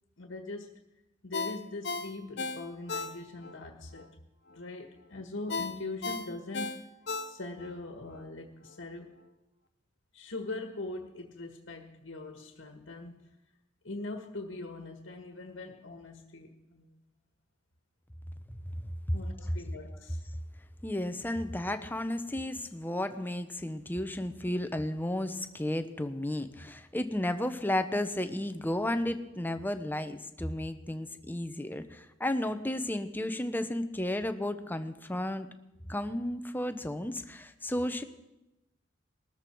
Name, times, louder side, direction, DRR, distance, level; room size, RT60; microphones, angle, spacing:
voice 1, 0.2-0.7 1.2-4.1 4.5-6.8 7.3-9.2 10.1-13.3 13.8-16.9 19.1-20.2, left 2 dB, 80° left, 4 dB, 1.7 m, -42 dB
Ringtone, 1.3-3.6 4.0-4.1 5.5-7.7 8.1-8.2, left 4 dB, 60° left, 0.9 m, -36 dB
voice 2, 18.8-19.2 20.8-35.5 35.9-38.0, left 1 dB, 10° left, 9 dB, 0.8 m, -33 dB
21.0 x 13.5 x 4.6 m, 0.97 s
head